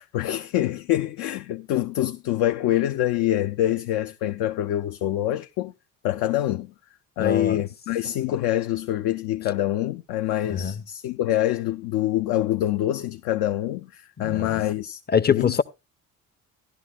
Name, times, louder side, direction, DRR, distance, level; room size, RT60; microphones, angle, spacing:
voice 1, 0.0-5.7 6.0-6.7 7.2-15.0 15.3-15.5, left 13 dB, 60° left, 0.7 m, -25 dB
voice 2, 7.2-7.6 10.4-10.7 14.2-14.6 15.1-15.6, left 7 dB, 25° left, 0.6 m, -23 dB
14.5 x 11.0 x 2.4 m
hypercardioid pair, 50°, 42 cm